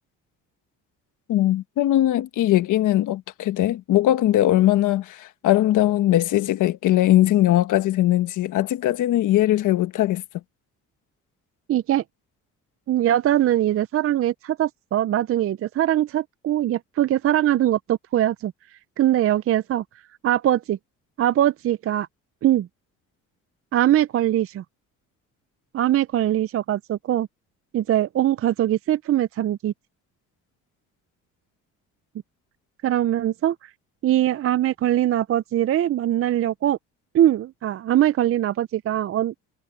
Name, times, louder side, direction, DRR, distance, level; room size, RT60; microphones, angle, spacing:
voice 1, 1.3-10.2, left 14 dB, 85° left, 1.4 m, -20 dB
voice 2, 11.7-12.0 12.9-18.5 19.0-19.8 20.2-20.8 21.2-22.1 22.4-22.7 23.7-24.6 25.7-27.3 27.7-29.7 32.8-33.7 34.0-36.8 37.1-39.3, right 12 dB, 50° right, 0.5 m, -22 dB
cardioid pair, 90°, 30 cm